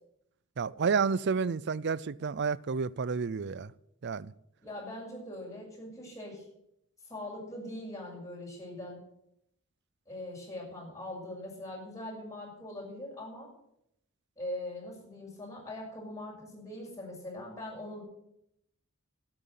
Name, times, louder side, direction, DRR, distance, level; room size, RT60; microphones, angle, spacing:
voice 1, 0.6-3.7 4.0-4.3, right 5 dB, 55° right, 0.5 m, -30 dB
voice 2, 4.6-6.4 7.0-9.1 10.1-13.5 14.4-18.0, left 1 dB, 15° left, 6.8 m, -42 dB
12.5 x 9.0 x 9.4 m
head